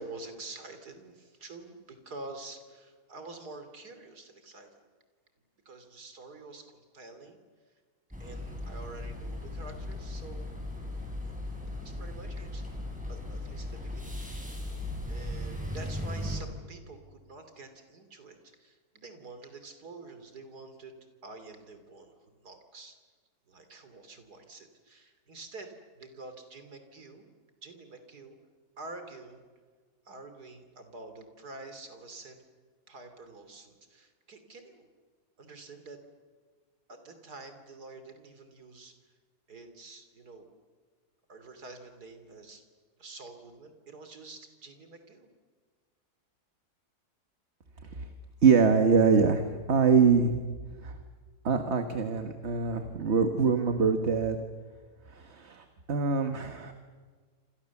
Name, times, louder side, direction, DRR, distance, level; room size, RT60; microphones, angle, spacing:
voice 1, 0.0-4.8 5.7-7.4 8.2-10.5 11.2-11.4 11.7-12.6 13.1-14.1 15.1-20.9 21.2-23.0 23.5-27.3 27.6-28.4 28.8-29.4 30.1-32.4 32.9-34.9 35.4-36.0 36.9-38.9 39.5-40.5 41.3-42.6 43.0-45.3, right 3 dB, 80° right, 7 dB, 3.6 m, -47 dB
sound 1, 8.1-16.4, left 1 dB, 5° right, 6.8 m, -37 dB
voice 2, 48.4-50.3 50.8-50.9 51.4-54.4 55.1-56.7, right 5 dB, 45° right, 6 dB, 1.7 m, -24 dB
28.0 x 27.0 x 7.2 m, 1.5 s
omnidirectional pair, 1.7 m